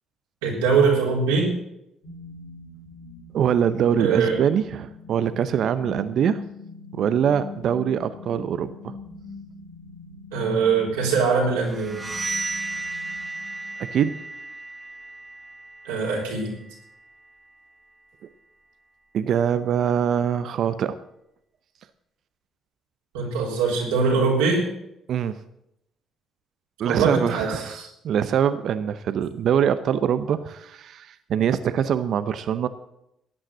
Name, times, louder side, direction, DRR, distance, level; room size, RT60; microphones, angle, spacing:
voice 1, 0.4-1.5 4.0-4.4 10.3-12.0 15.8-16.5 23.1-24.6 26.9-27.9, right 5 dB, 90° right, -2 dB, 3.9 m, -22 dB
sound 1, 2.0-14.0, left 3 dB, 90° left, 2.9 m, -42 dB
voice 2, 3.3-6.4 6.9-8.9 13.8-14.1 19.1-21.0 25.1-25.4 26.8-32.7, right 8 dB, 65° right, 13 dB, 0.7 m, -23 dB
sound 2, 11.6-17.3, right 2 dB, 25° right, 1.0 m, -35 dB
13.5 x 8.9 x 7.9 m, 0.82 s
hypercardioid pair, 55°, 0 cm